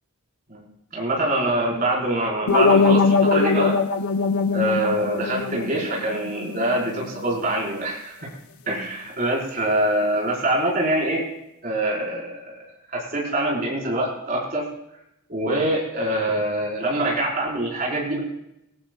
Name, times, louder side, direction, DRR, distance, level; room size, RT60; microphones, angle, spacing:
voice 1, 0.9-3.8 4.5-8.1 8.7-11.2 11.6-14.7 15.3-18.2, right 1 dB, 40° right, -4 dB, 4.8 m, -24 dB
sound 1, 2.5-7.4, left 4 dB, 80° left, 0.8 m, -22 dB
18.5 x 18.0 x 2.4 m, 0.85 s
head